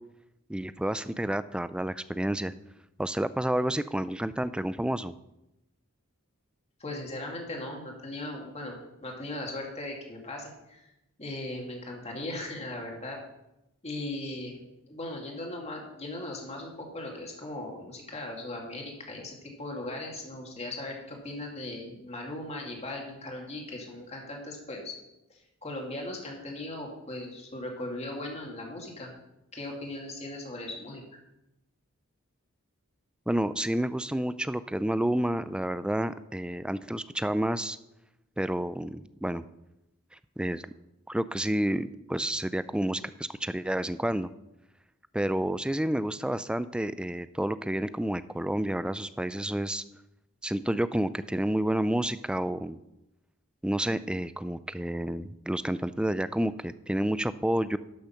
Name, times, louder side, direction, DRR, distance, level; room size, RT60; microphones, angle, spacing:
voice 1, 0.5-2.5 3.0-5.1 33.3-37.8 38.4-39.4 40.4-40.6 41.1-44.3 45.1-49.8 50.4-52.8 53.6-57.8, right 1 dB, 5° right, 14 dB, 0.3 m, -29 dB
voice 2, 6.8-10.9 11.2-13.2 13.8-14.6 14.9-24.9 25.3-29.1 29.5-31.0, left 1 dB, 30° left, 0 dB, 2.3 m, -38 dB
12.0 x 6.6 x 5.7 m, 0.90 s
head